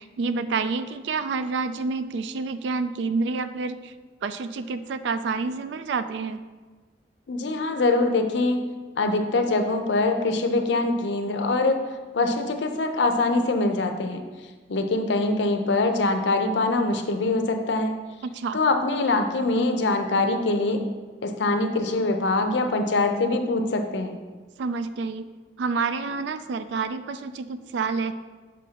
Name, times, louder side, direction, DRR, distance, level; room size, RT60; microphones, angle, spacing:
voice 1, 0.0-3.9 4.2-6.4 18.2-18.6 24.6-25.3 25.6-28.1, right 4 dB, 80° right, 12 dB, 0.3 m, -28 dB
voice 2, 7.3-8.6 9.0-11.8 12.1-14.2 14.7-18.0 18.5-20.8 21.2-24.2, left 2 dB, 80° left, 5 dB, 0.6 m, -23 dB
6.4 x 5.2 x 2.8 m, 1.3 s
head